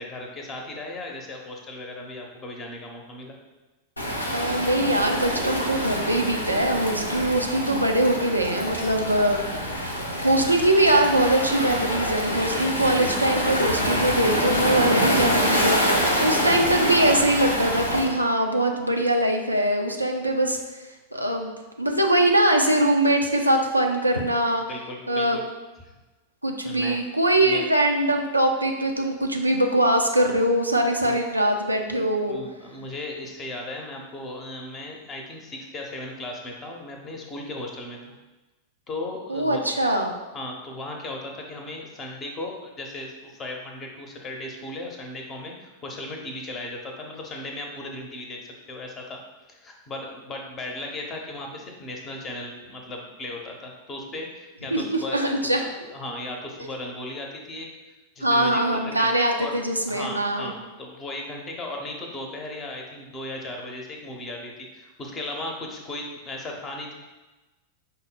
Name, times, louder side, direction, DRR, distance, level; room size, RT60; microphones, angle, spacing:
voice 1, 0.0-3.4 24.7-25.4 26.6-27.0 27.4-27.7 31.0-31.2 32.3-38.0 38.9-39.8 40.3-48.4 48.7-49.2 49.5-57.7 58.2-58.6 59.0-59.1 59.4-59.5 59.9-66.9, left 2 dB, 25° left, 1 dB, 0.8 m, -36 dB
Waves surf, 4.0-18.1, equal, 85° left, 0.6 m, -26 dB
voice 2, 4.3-9.4 10.2-20.6 21.1-21.5 21.8-24.6 25.1-25.4 26.4-32.4 39.3-40.1 54.7-55.6 56.6-56.7 58.2-60.5, right 1 dB, 85° right, 2 dB, 0.4 m, -22 dB
5.3 x 2.1 x 4.1 m, 1.2 s
figure-of-eight pair, 90°, 0 cm